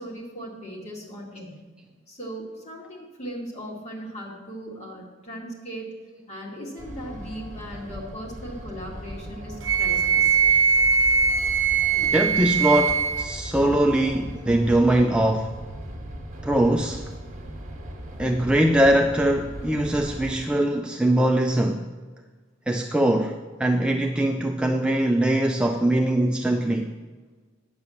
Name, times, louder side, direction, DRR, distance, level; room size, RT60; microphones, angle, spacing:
voice 1, 0.0-1.5 2.1-5.9 6.3-10.4, equal, 30° left, -2 dB, 2.1 m, -38 dB
sound 1, 6.8-20.3, right 1 dB, 35° right, 1.5 m, -38 dB
Wind instrument woodwind instrument, 9.6-13.3, right 6 dB, 65° right, 0.8 m, -21 dB
voice 2, 12.0-15.5 16.4-17.1 18.2-21.9 22.7-26.9, right 1 dB, 5° right, 3 dB, 0.3 m, -22 dB
9.6 x 6.9 x 7.0 m, 1.3 s
head